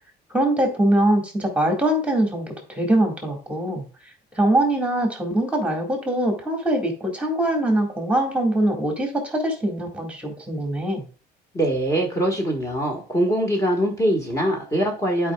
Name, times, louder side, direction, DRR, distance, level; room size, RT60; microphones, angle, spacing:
voice 1, 0.3-3.9 4.4-11.1, right 1 dB, 5° right, 2 dB, 1.9 m, -22 dB
voice 2, 11.5-15.3, right 1 dB, 20° left, 0 dB, 1.7 m, -23 dB
11.0 x 4.9 x 2.4 m, 0.36 s
cardioid pair, 110°, 17 cm